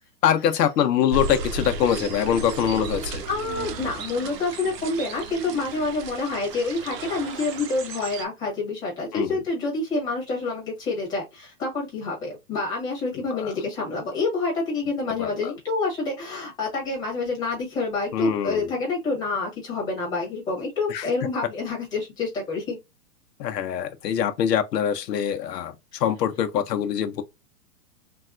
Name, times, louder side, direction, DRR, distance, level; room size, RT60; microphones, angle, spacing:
voice 1, 0.2-3.2 9.1-9.4 13.3-13.5 15.2-15.5 18.1-18.7 20.9-21.1 23.4-27.2, left 9 dB, 85° left, 0.7 m, -24 dB
sound 1, 1.1-8.3, right 3 dB, 90° right, 0.9 m, -34 dB
voice 2, 3.3-22.8 25.9-26.0, left 3 dB, 10° left, 1.1 m, -28 dB
3.4 x 2.3 x 2.4 m
hypercardioid pair, 170°, 47 cm